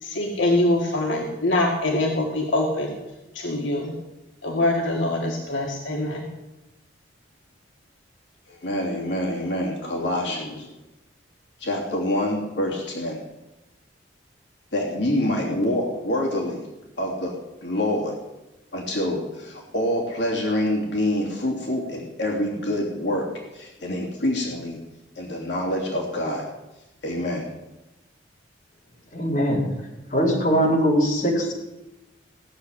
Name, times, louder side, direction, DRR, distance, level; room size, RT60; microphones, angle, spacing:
voice 1, 0.0-3.0 3.3-3.9 4.4-6.3, left 1 dB, 85° left, 0 dB, 2.0 m, -24 dB
voice 2, 8.5-10.7 11.6-13.2 14.7-16.7 17.0-17.3 17.6-18.2 18.7-23.3 23.5-24.8 25.1-26.5 27.0-27.5, left 1 dB, 65° left, -2 dB, 3.0 m, -26 dB
voice 3, 29.1-29.7 30.1-31.5, equal, 45° left, -3 dB, 4.6 m, -21 dB
17.0 x 7.4 x 9.8 m, 1.0 s
head